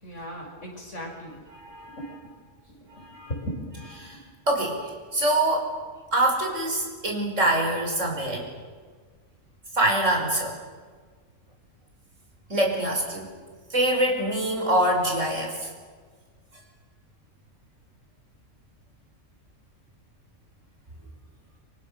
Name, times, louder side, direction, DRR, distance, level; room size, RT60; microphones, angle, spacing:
voice 1, 0.0-1.4 1.9-2.3 2.7-4.0, equal, 65° left, 0 dB, 6.4 m, -37 dB
voice 2, 1.5-2.0 2.9-3.3 4.0-4.2 4.5-5.7 6.1-8.5 9.7-10.6 12.5-13.3 13.7-15.7, right 1 dB, 70° right, 1 dB, 5.8 m, -25 dB
27.5 x 26.0 x 6.7 m, 1.5 s
omnidirectional pair, 1.3 m